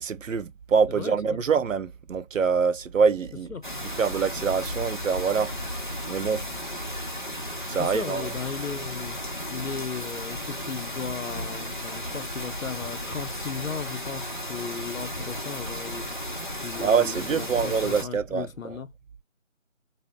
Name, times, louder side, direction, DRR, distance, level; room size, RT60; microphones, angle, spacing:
voice 1, 0.0-3.5 4.0-5.5 6.1-6.4 7.7-8.3 16.8-18.7, right 6 dB, 75° right, 0.5 m, -25 dB
voice 2, 0.9-1.4 3.5-3.6 7.8-9.2 9.5-18.9, left 6 dB, 85° left, 0.7 m, -36 dB
sound 1, 3.6-18.0, left 1 dB, 40° left, 0.6 m, -34 dB
2.7 x 2.1 x 2.2 m
figure-of-eight pair, 170°, 40 cm